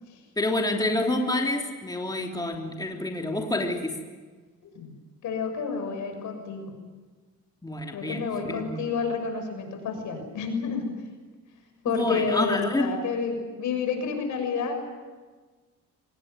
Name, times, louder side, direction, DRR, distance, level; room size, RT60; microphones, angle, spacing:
voice 1, 0.4-3.9 7.6-8.8 11.9-12.9, left 2 dB, 15° left, 2 dB, 3.2 m, -28 dB
voice 2, 5.2-6.7 7.9-10.9 11.8-14.8, left 5 dB, 75° left, 5 dB, 6.9 m, -30 dB
24.5 x 20.5 x 9.6 m, 1.3 s
cardioid pair, 90°, 30 cm